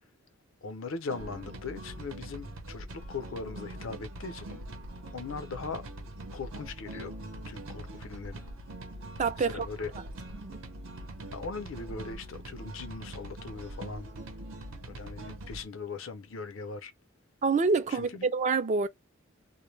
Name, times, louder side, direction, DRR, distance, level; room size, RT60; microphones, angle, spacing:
voice 1, 0.6-4.6 5.1-5.9 6.3-7.2 7.5-8.4 9.4-9.9 11.3-14.1 14.9-16.9 17.9-18.3, left 4 dB, 70° left, 0.6 m, -40 dB
sound 1, 1.1-15.6, right 1 dB, 80° right, 0.8 m, -43 dB
voice 2, 9.2-9.7 10.3-10.6 17.4-18.9, right 4 dB, 35° right, 0.4 m, -27 dB
2.1 x 2.1 x 3.1 m
head